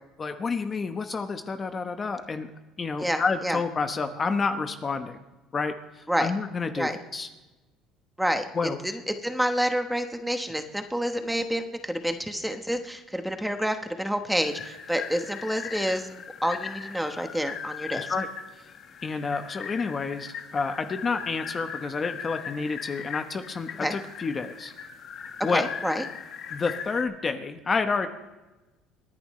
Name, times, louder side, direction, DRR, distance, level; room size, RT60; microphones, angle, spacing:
voice 1, 0.2-2.5 2.8-5.2 5.5-7.3 8.5-8.8 17.9-18.3 19.0-24.7 25.4-25.7 26.5-28.1, left 4 dB, 25° left, 7 dB, 1.0 m, -29 dB
voice 2, 3.0-3.6 6.1-6.3 6.8-7.0 8.2-8.4 9.1-16.1 16.4-18.1 23.8-23.9 25.5-26.0, equal, 5° right, 6 dB, 1.1 m, -28 dB
sound 1, 14.4-27.0, left 7 dB, 50° left, 1.5 m, -39 dB
28.0 x 10.5 x 3.2 m, 1.1 s
cardioid pair, 120°, 0 cm